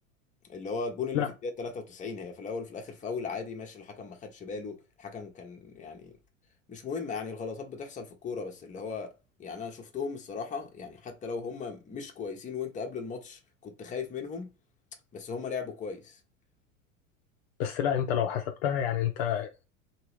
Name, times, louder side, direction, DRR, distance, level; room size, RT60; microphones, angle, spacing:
voice 1, 0.5-6.1 6.7-9.1 9.4-14.5 15.1-16.2, left 5 dB, 20° left, 0.8 m, -37 dB
voice 2, 17.6-19.6, left 9 dB, 50° left, 0.5 m, -28 dB
2.9 x 2.9 x 3.0 m
figure-of-eight pair, 80°, 41 cm